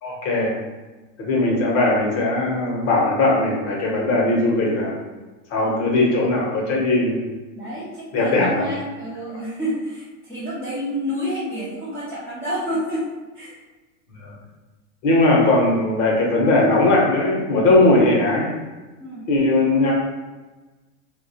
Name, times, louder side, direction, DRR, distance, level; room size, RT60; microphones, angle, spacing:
voice 1, 0.0-0.6 1.2-5.0 5.5-7.2 8.1-8.6 14.2-14.3 15.0-18.5 19.3-19.9, left 2 dB, 40° left, -2 dB, 0.7 m, -19 dB
voice 2, 7.5-13.1 13.3-13.6 19.0-19.3, equal, 5° right, -13 dB, 0.4 m, -29 dB
2.2 x 2.0 x 2.7 m, 1.2 s
supercardioid pair, 140°, 38 cm